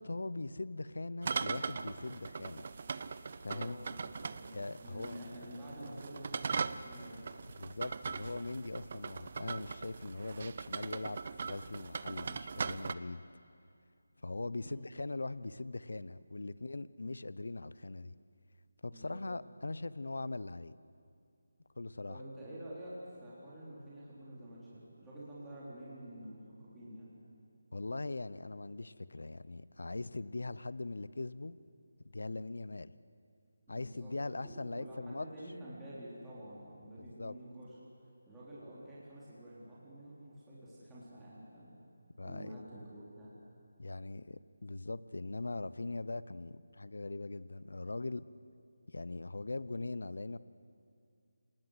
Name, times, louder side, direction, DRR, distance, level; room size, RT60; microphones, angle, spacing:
voice 1, 0.0-2.7 3.4-3.8 4.5-5.2 7.6-13.2 14.2-18.2 18.8-20.7 21.8-22.2 27.7-31.6 32.0-32.9 33.7-35.3 37.2-37.3 42.2-42.5 43.8-48.3 48.9-50.4, left 2 dB, 80° left, 17 dB, 0.8 m, -41 dB
sound 1, 1.2-12.9, right 5 dB, 40° right, 0.6 m, -40 dB
voice 2, 3.4-7.2 14.6-14.9 18.9-19.2 22.1-27.1 33.7-34.1 34.4-37.8 38.3-41.7 42.2-43.3, right 1 dB, 5° right, -9 dB, 3.6 m, -49 dB
27.0 x 19.5 x 8.1 m, 2.4 s
figure-of-eight pair, 170°, 0 cm